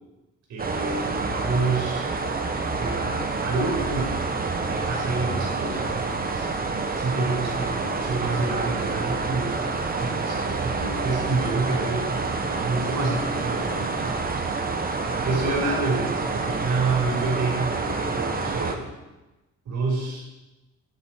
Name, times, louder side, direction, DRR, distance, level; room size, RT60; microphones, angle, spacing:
voice 1, 0.5-2.1 2.8-6.5 6.9-9.7 10.0-18.8 19.7-20.3, right 3 dB, 70° right, -2 dB, 5.2 m, -28 dB
sound 1, 0.6-18.7, right 3 dB, 30° right, 1.5 m, -28 dB
11.0 x 11.0 x 4.7 m, 1.1 s
cardioid pair, 90°, 30 cm